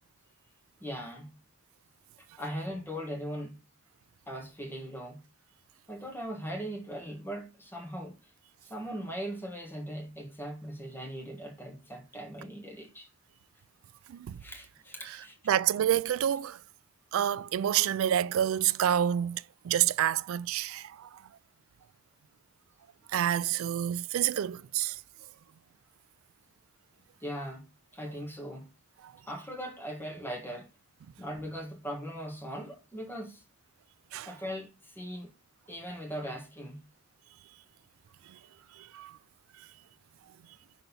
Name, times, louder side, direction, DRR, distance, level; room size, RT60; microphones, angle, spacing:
voice 1, 0.8-1.3 2.4-3.6 4.3-5.2 5.9-8.2 8.6-13.1 14.4-15.4 27.2-27.6 27.9-28.6 29.3-30.7 31.2-33.4 34.2-35.3 35.7-36.8, equal, 10° left, 1.6 m, -39 dB
voice 2, 15.5-16.6 17.1-21.2 23.1-25.0 29.0-29.1 34.1-34.3 38.3-38.4 38.8-39.2, right 10 dB, 80° right, 0.3 m, -28 dB
6.0 x 4.0 x 5.4 m
head